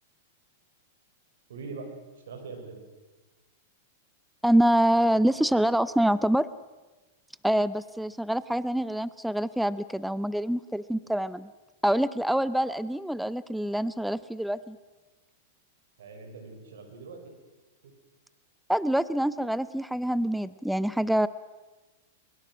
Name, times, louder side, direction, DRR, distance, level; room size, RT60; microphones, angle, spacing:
voice 1, 1.5-1.9 2.3-2.8 16.0-17.2, right 4 dB, 80° right, 4 dB, 5.6 m, -42 dB
voice 2, 4.4-6.5 7.4-11.5 11.8-14.8 18.7-21.3, right 1 dB, ahead, 16 dB, 0.6 m, -25 dB
23.0 x 22.5 x 6.3 m, 1.2 s
hypercardioid pair, 120°, 0 cm